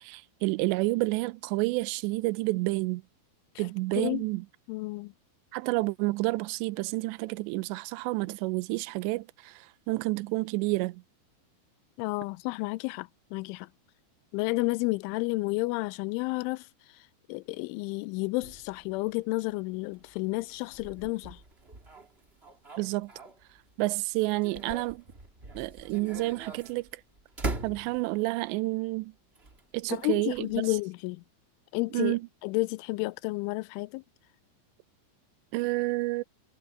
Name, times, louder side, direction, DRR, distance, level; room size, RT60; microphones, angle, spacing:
voice 1, 0.0-3.0 3.6-4.4 5.5-9.3 9.9-11.0 22.8-23.1 23.8-25.0 25.6-26.9 27.6-29.1 29.7-30.5 31.9-32.2 35.5-36.2, right 22 dB, 80° right, 2.7 m, -29 dB
voice 2, 3.9-4.2 4.7-5.1 12.0-13.7 14.3-16.7 17.3-21.4 29.9-31.2 31.7-32.2 32.4-34.0, left 24 dB, 85° left, 3.0 m, -31 dB
sound 1, 18.4-23.7 24.1-28.3 29.3-30.8, right 2 dB, 25° right, 1.2 m, -42 dB
omnidirectional pair, 5.5 m